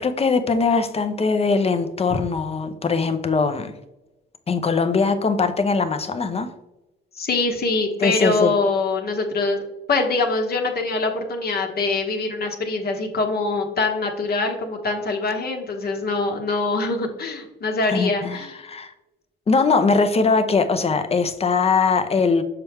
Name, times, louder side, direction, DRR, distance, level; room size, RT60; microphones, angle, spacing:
voice 1, 0.0-3.7 4.5-6.5 8.0-8.5 17.9-18.9 19.5-22.4, left 4 dB, 30° left, 8 dB, 0.8 m, -21 dB
voice 2, 7.1-9.6 9.9-18.5, left 3 dB, 50° left, 3 dB, 1.2 m, -23 dB
6.9 x 4.5 x 3.5 m, 0.97 s
cardioid pair, 90°, 20 cm